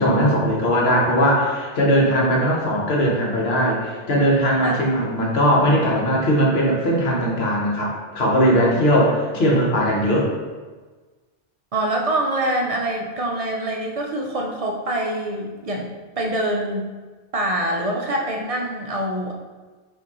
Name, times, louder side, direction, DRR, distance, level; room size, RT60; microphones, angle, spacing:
voice 1, 0.0-10.3, equal, 65° left, -3 dB, 1.2 m, -19 dB
voice 2, 2.0-2.4 4.6-4.9 8.7-8.8 11.7-15.9 16.2-16.9 17.3-19.3, right 1 dB, 50° right, 0 dB, 0.4 m, -25 dB
5.8 x 2.7 x 2.9 m, 1.3 s
omnidirectional pair, 1.2 m